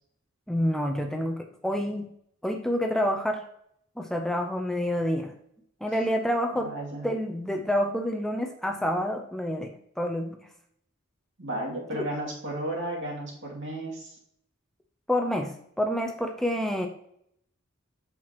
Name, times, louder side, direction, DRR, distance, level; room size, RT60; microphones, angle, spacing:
voice 1, 0.5-2.1 2.4-3.4 4.0-5.3 5.8-6.7 7.0-10.4 11.9-12.0 15.1-16.9, equal, ahead, 3 dB, 0.5 m, -28 dB
voice 2, 6.6-7.1 11.4-14.2, right 1 dB, 65° right, -2 dB, 2.4 m, -33 dB
7.6 x 5.8 x 2.9 m, 0.71 s
head